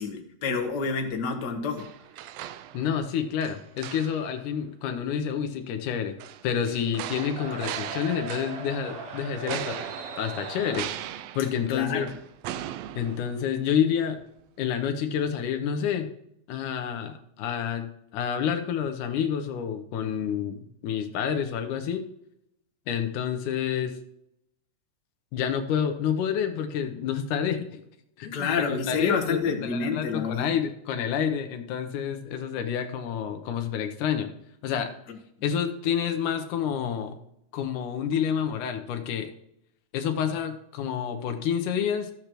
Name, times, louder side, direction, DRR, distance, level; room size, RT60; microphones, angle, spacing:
voice 1, 0.0-1.9 11.7-12.1 28.3-30.5, left 5 dB, 50° left, 4 dB, 1.3 m, -28 dB
sound 1, 1.8-3.1 3.4-4.4 6.2-8.9 9.5-13.8 14.2-14.3, right 12 dB, 85° right, 1.5 m, -38 dB
voice 2, 2.7-6.2 6.4-9.8 10.2-10.9 11.4-12.1 12.9-14.2 14.6-16.1 16.5-22.0 22.9-23.9 25.3-27.8 28.2-34.3 34.6-34.9 35.4-37.1 37.5-39.3 39.9-42.1, left 8 dB, 90° left, 6 dB, 2.4 m, -28 dB
sound 2, 7.4-11.1, right 3 dB, 60° right, 1.9 m, -39 dB
14.0 x 8.3 x 3.0 m, 0.78 s
omnidirectional pair, 3.5 m